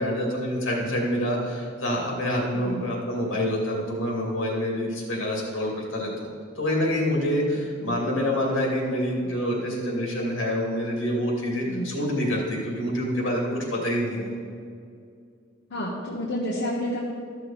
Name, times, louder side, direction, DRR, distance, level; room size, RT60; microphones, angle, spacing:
voice 1, 0.0-6.3 6.6-14.3, equal, 80° left, -2 dB, 2.5 m, -27 dB
voice 2, 15.7-17.0, equal, 60° left, -5 dB, 1.3 m, -30 dB
13.5 x 6.4 x 4.4 m, 2.3 s
head